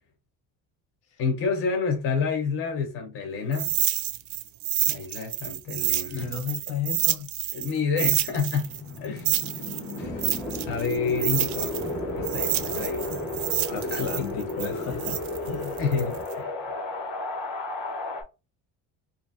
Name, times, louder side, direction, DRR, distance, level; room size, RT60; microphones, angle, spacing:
voice 1, 1.2-3.7 4.9-6.3 7.5-8.7 9.0-9.3 10.0-10.3 10.7-11.8 12.1-13.2 13.7-15.0 15.8-16.5, left 5 dB, 45° left, 0.9 m, -29 dB
sound 1, 3.5-7.7 8.0-11.9 12.2-16.3, right 14 dB, 65° right, 0.4 m, -28 dB
voice 2, 6.1-7.3 13.7-15.8, left 7 dB, 70° left, 1.1 m, -34 dB
Wind, 8.1-18.2, left 2 dB, 90° left, 1.4 m, -34 dB
sound 2, 10.0-16.3, right 2 dB, 5° left, 0.8 m, -41 dB
2.9 x 2.5 x 2.7 m
cardioid pair, 165°, 32 cm